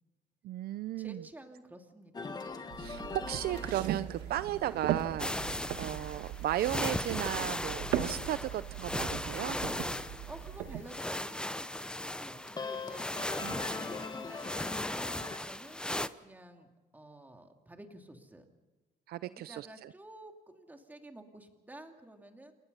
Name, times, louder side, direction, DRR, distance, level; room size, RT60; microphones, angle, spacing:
voice 1, 0.4-1.2 2.8-5.4 5.8-9.6 13.4-13.6 19.1-19.9, right 13 dB, 65° right, 15 dB, 0.6 m, -35 dB
voice 2, 1.0-2.4 10.3-11.7 11.9-13.0 13.5-15.9 16.2-18.5 19.2-22.5, right 1 dB, 10° right, 4 dB, 2.7 m, -51 dB
sound 1, 2.1-15.4, left 4 dB, 25° left, 1.5 m, -45 dB
sound 2, 2.7-10.8, right 11 dB, 85° right, 1.5 m, -39 dB
sound 3, 5.2-16.1, left 1 dB, 5° left, 0.7 m, -37 dB
28.5 x 19.5 x 5.6 m, 1.2 s
cardioid pair, 110°, 17 cm